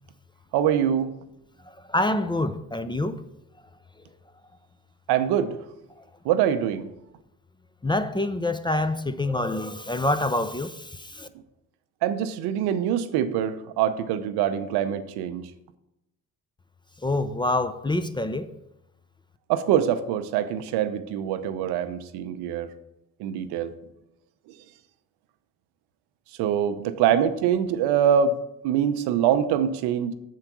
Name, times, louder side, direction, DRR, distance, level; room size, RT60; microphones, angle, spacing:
voice 1, 0.5-1.1 5.1-5.7 6.2-6.9 12.0-15.5 19.5-22.7 23.2-23.7 24.5-24.6 26.4-30.1, right 9 dB, 85° right, 0.7 m, -24 dB
voice 2, 1.9-3.2 7.8-11.3 17.0-18.5, left 2 dB, 15° left, 0.4 m, -26 dB
6.6 x 4.6 x 6.0 m
supercardioid pair, 70°, 38 cm